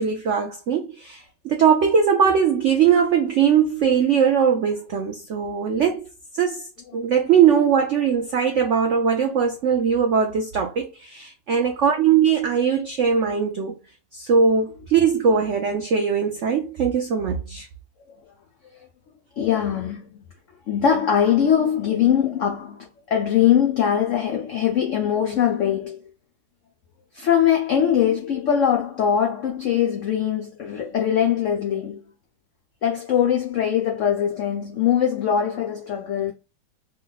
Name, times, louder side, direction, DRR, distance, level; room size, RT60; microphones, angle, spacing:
voice 1, 0.0-6.1 6.3-6.7 6.9-13.8 14.1-17.7, right 7 dB, 85° right, 0.6 m, -20 dB
voice 2, 19.4-20.2 20.7-26.0 27.1-32.1 32.8-36.3, left 9 dB, 80° left, 0.6 m, -22 dB
3.0 x 2.2 x 3.9 m
omnidirectional pair, 2.0 m